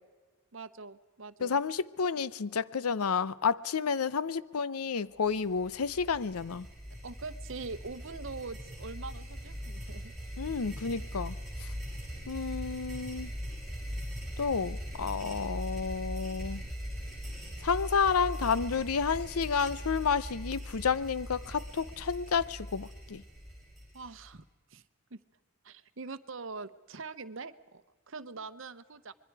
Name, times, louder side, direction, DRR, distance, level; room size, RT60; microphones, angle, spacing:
voice 1, 0.5-1.6 7.0-10.1 23.9-24.4 24.7-24.8 25.1-25.2 25.6-29.1, right 4 dB, 60° right, 0.9 m, -43 dB
voice 2, 1.4-6.7 10.4-11.7 12.3-13.3 14.4-16.6 17.6-23.2, left 5 dB, 85° left, 0.7 m, -30 dB
sound 1, 5.3-24.4, equal, ahead, 6.8 m, -41 dB
25.5 x 22.5 x 4.7 m
head